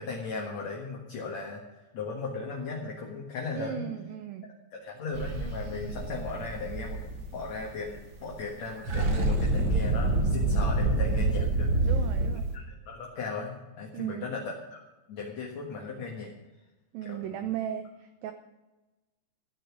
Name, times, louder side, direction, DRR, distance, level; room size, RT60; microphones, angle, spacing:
voice 1, 0.0-1.6 1.9-3.9 4.7-11.9 12.3-14.8 15.1-16.3 17.0-17.5, left 4 dB, 55° left, -1 dB, 2.2 m, -37 dB
voice 2, 3.6-4.5 11.8-12.5 13.9-14.3 16.9-18.3, right 10 dB, 80° right, 7 dB, 2.1 m, -36 dB
sound 1, 5.1-8.0 8.3-8.5 8.7-12.6, right 2 dB, 60° right, 1.2 m, -27 dB
14.5 x 10.5 x 6.1 m, 1.1 s
omnidirectional pair, 4.9 m